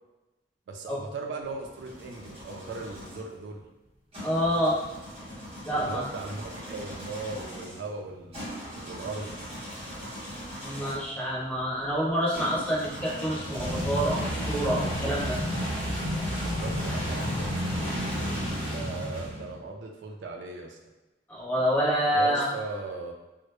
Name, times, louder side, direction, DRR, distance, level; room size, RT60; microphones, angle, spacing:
voice 1, 0.7-3.6 5.7-9.3 16.4-20.8 22.1-23.1, right 3 dB, 75° right, 1 dB, 0.3 m, -38 dB
sound 1, 1.4-3.2 4.1-11.1 12.3-19.6, equal, 35° right, 0.9 m, -34 dB
voice 2, 4.2-4.8 5.7-6.0 10.6-15.4 21.3-22.4, equal, 10° left, -7 dB, 0.6 m, -27 dB
2.1 x 2.1 x 2.9 m, 1.1 s
head